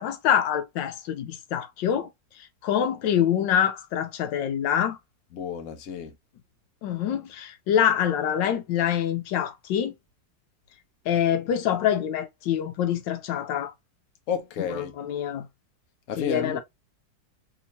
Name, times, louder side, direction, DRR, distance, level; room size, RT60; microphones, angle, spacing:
voice 1, 0.0-2.1 2.6-5.0 6.8-9.9 11.1-13.7 14.7-15.5 16.2-16.6, left 9 dB, 85° left, 1.3 m, -25 dB
voice 2, 5.3-6.1 14.3-14.9 16.1-16.6, left 7 dB, 60° left, 1.0 m, -31 dB
3.5 x 2.8 x 2.8 m
omnidirectional pair, 2.0 m